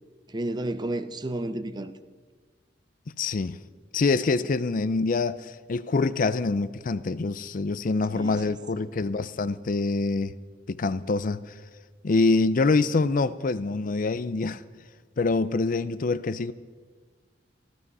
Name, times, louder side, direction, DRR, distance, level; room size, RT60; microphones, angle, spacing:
voice 1, 0.3-2.0 8.1-8.4 8.8-9.2, right 1 dB, 25° right, 0.7 m, -32 dB
voice 2, 3.2-3.6 3.9-10.3 10.7-11.6 12.0-14.6 15.2-16.5, left 3 dB, 50° left, 0.5 m, -25 dB
16.0 x 14.5 x 5.5 m
head